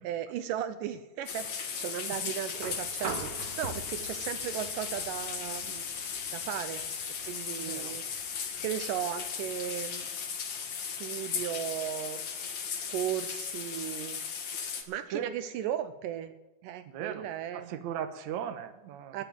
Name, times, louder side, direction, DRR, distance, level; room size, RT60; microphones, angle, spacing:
voice 1, 0.0-5.9 6.3-6.9 7.2-8.0 8.6-10.1 10.8-12.2 12.9-14.2 14.9-16.3 16.6-17.7 19.1-19.2, right 10 dB, 80° right, 10 dB, 2.3 m, -36 dB
sound 1, 1.3-14.8, left 6 dB, 60° left, 2.8 m, -37 dB
sound 2, 2.5-10.6 12.0-12.1, right 4 dB, 50° right, 2.2 m, -45 dB
voice 2, 7.6-8.0 15.1-15.3 16.9-17.3 17.5-19.2, right 9 dB, 65° right, 8 dB, 2.2 m, -38 dB
20.0 x 7.1 x 7.6 m, 1.0 s
omnidirectional pair, 3.9 m